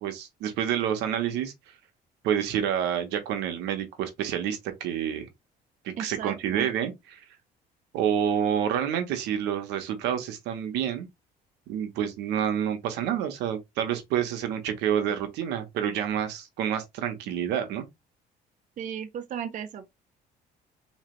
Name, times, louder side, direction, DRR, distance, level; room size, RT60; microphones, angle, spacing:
voice 1, 0.0-1.5 2.2-5.3 5.8-7.2 7.9-11.1 11.7-17.8, right 9 dB, 90° right, 1.0 m, -28 dB
voice 2, 6.0-6.7 18.8-19.9, right 8 dB, 50° right, 0.7 m, -35 dB
3.8 x 3.2 x 3.1 m
cardioid pair, 110°, 17 cm